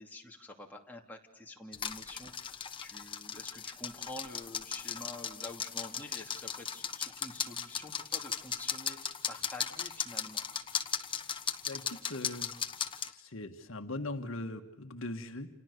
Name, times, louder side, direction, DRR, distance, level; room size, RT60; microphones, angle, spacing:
voice 1, 0.0-10.4, left 2 dB, 10° left, 0 dB, 2.7 m, -48 dB
sound 1, 1.7-13.1, left 7 dB, 25° left, 1.2 m, -37 dB
voice 2, 11.7-12.5 13.1-15.5, left 2 dB, 65° left, 6 dB, 1.6 m, -40 dB
29.5 x 28.0 x 6.7 m, 0.73 s
head